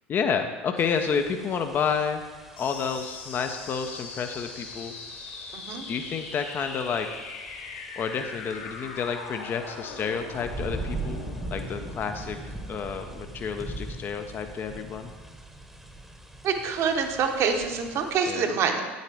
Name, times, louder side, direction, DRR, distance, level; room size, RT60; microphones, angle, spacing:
voice 1, 0.1-2.2 2.6-4.9 5.9-7.1 8.0-11.2 11.5-15.1 18.2-18.5, left 6 dB, 30° left, 6 dB, 0.7 m, -30 dB
sound 1, 0.8-18.2, right 2 dB, 5° right, 1.1 m, -41 dB
sound 2, 2.6-13.6, left 4 dB, 70° left, 1.6 m, -41 dB
voice 2, 5.5-5.8 16.4-18.8, right 6 dB, 45° right, 5 dB, 1.1 m, -26 dB
9.2 x 9.1 x 3.4 m, 1.3 s
figure-of-eight pair, 75°, 7 cm